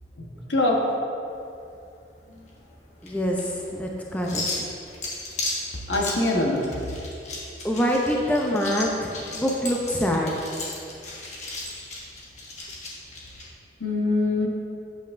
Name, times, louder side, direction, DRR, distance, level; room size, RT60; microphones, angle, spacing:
voice 1, 0.2-0.8 5.9-6.9 13.8-14.5, left 2 dB, 75° left, -1 dB, 1.2 m, -24 dB
sound 1, 1.3-13.4, left 2 dB, 40° left, 1.4 m, -36 dB
voice 2, 3.0-4.7 7.6-10.4, equal, 10° left, -1 dB, 0.5 m, -25 dB
8.8 x 8.7 x 2.6 m, 2.7 s
head